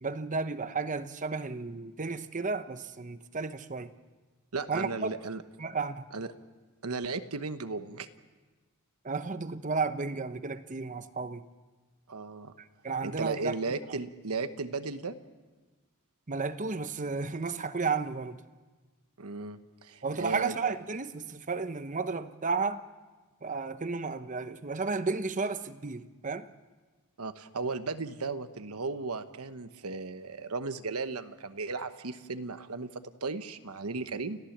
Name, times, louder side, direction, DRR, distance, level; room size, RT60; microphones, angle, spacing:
voice 1, 0.0-3.9 4.7-5.1 5.6-6.1 9.0-11.4 12.6-13.5 16.3-18.4 20.0-22.8 23.4-26.5, right 4 dB, 35° right, 11 dB, 0.9 m, -33 dB
voice 2, 4.5-5.4 6.1-6.3 6.8-8.1 12.1-12.5 13.0-15.1 19.2-20.6 27.2-34.4, right 4 dB, 85° right, 10 dB, 1.1 m, -35 dB
30.0 x 15.0 x 7.3 m, 1.3 s
head